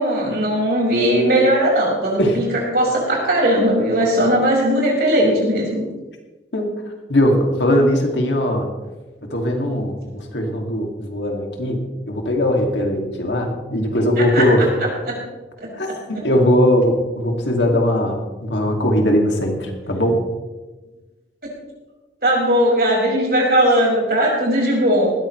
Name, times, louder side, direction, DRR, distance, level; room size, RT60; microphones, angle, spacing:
voice 1, 0.0-5.8 14.2-14.5 14.8-15.2 15.6-15.7 22.2-25.1, right 1 dB, 55° right, -3 dB, 5.8 m, -18 dB
voice 2, 7.1-8.7 9.3-14.7 15.8-20.2, equal, 80° left, 2 dB, 2.6 m, -19 dB
19.5 x 14.0 x 3.3 m, 1.2 s
head